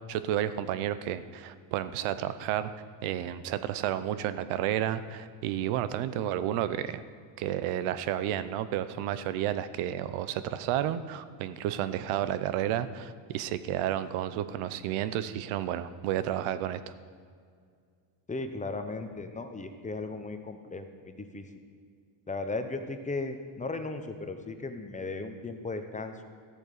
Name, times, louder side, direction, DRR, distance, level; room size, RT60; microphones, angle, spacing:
voice 1, 0.1-2.7 3.0-7.0 7.4-16.9, right 11 dB, 80° right, 13 dB, 0.8 m, -31 dB
voice 2, 18.3-21.5 22.3-26.2, left 3 dB, 15° left, 7 dB, 0.8 m, -36 dB
14.0 x 8.8 x 6.6 m, 2.1 s
cardioid pair, 130°, 48 cm